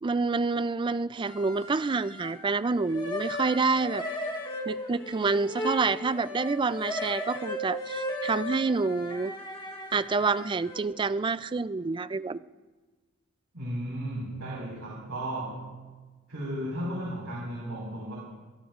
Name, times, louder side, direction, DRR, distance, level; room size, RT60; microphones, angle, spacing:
voice 1, 0.0-4.0 4.7-9.3 9.9-12.4, right 4 dB, 20° right, 15 dB, 0.4 m, -28 dB
sound 1, 1.3-2.4 2.7-10.8, left 1 dB, 25° left, 1.8 m, -36 dB
voice 2, 13.5-15.7 16.3-18.2, right 1 dB, 90° right, -5 dB, 5.1 m, -34 dB
23.5 x 20.5 x 2.5 m, 1.3 s
head